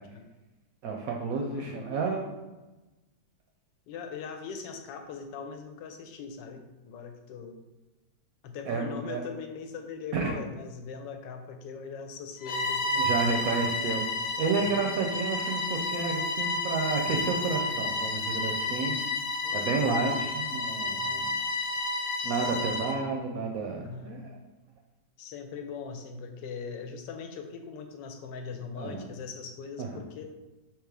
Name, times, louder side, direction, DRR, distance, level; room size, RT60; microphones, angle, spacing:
voice 1, 0.8-2.3 8.7-9.2 10.1-10.4 13.0-14.0 14.4-19.0 19.5-21.3 22.2-24.4 28.8-29.1 29.8-30.0, right 4 dB, 70° right, 1 dB, 0.8 m, -31 dB
voice 2, 1.4-2.3 3.9-7.6 8.4-13.2 14.6-14.8 19.4-19.9 20.9-21.4 22.2-22.6 23.8-24.2 25.2-30.2, left 5 dB, 90° left, 5 dB, 1.3 m, -41 dB
Bowed string instrument, 12.4-23.0, left 2 dB, 55° left, 1.1 m, -31 dB
3.7 x 2.9 x 4.7 m, 1.1 s
omnidirectional pair, 1.9 m